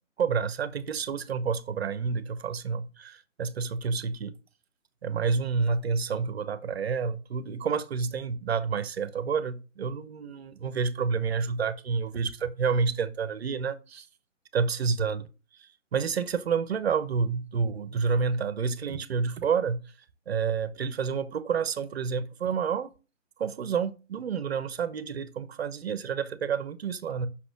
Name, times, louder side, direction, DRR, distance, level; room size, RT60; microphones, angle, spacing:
voice 1, 0.2-4.3 5.0-14.1 14.5-15.3 15.6-19.8 20.3-22.9 23.4-27.3, right 5 dB, 50° right, 0.9 m, -29 dB
6.1 x 4.1 x 6.0 m
figure-of-eight pair, 140°, 39 cm